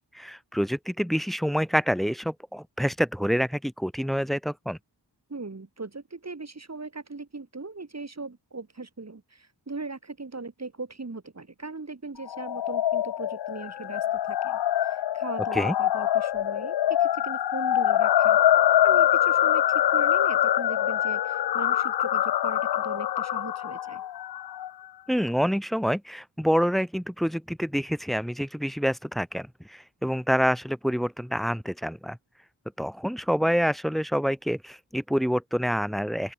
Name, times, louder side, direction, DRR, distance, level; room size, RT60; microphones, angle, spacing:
voice 1, 0.1-4.8 15.5-15.7 25.1-32.2 32.8-36.3, equal, ahead, 0.9 m, -27 dB
voice 2, 5.3-18.4 18.8-24.0, right 3 dB, 40° right, 4.0 m, -39 dB
sound 1, 12.3-24.7, left 12 dB, 70° left, 0.5 m, -24 dB
open air
wide cardioid pair, 90°, 42 cm